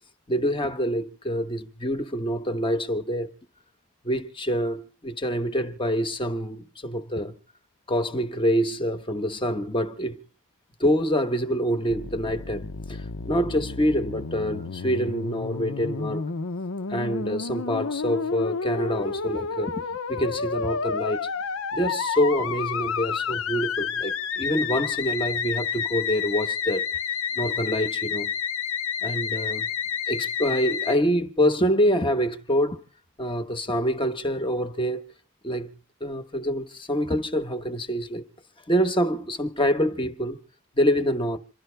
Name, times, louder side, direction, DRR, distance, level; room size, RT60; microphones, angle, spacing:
voice 1, 0.3-3.3 4.0-7.3 7.9-10.2 10.8-16.2 16.9-19.8 20.1-21.3 21.7-26.9 27.3-28.3 29.0-29.7 30.1-32.8 33.2-35.0 35.4-35.7 36.0-38.2 38.7-40.4 40.8-41.4, equal, 25° left, 1.1 m, -26 dB
Musical instrument, 11.9-31.0, left 6 dB, 65° left, 0.7 m, -30 dB
27.5 x 12.0 x 3.4 m
head